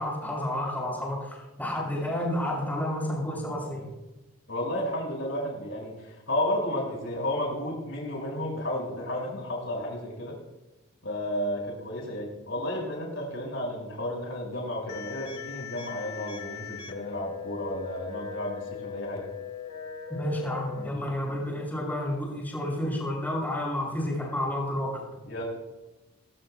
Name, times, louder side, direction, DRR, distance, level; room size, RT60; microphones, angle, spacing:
voice 1, 0.0-3.9 20.1-25.0, left 1 dB, 10° left, -4 dB, 6.9 m, -30 dB
voice 2, 4.5-10.4 11.0-19.3 25.3-25.5, left 1 dB, 60° left, -1 dB, 6.0 m, -32 dB
sound 1, 14.9-20.9, left 8 dB, 90° left, 1.7 m, -40 dB
22.5 x 22.0 x 2.3 m, 1.1 s
head